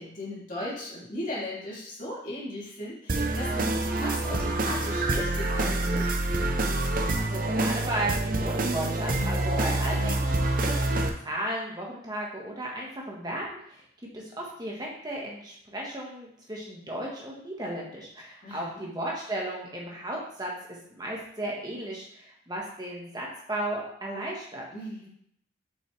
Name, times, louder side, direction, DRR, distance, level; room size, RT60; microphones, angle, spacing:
voice 1, 0.0-6.0 18.4-18.8 24.7-25.1, left 1 dB, 40° left, -7 dB, 3.0 m, -37 dB
sound 1, 3.1-11.1, right 2 dB, 45° right, 0.7 m, -27 dB
voice 2, 7.2-13.8 14.1-20.5 20.9-24.7, right 1 dB, 20° right, -2 dB, 1.5 m, -35 dB
7.1 x 5.4 x 3.3 m, 0.68 s
head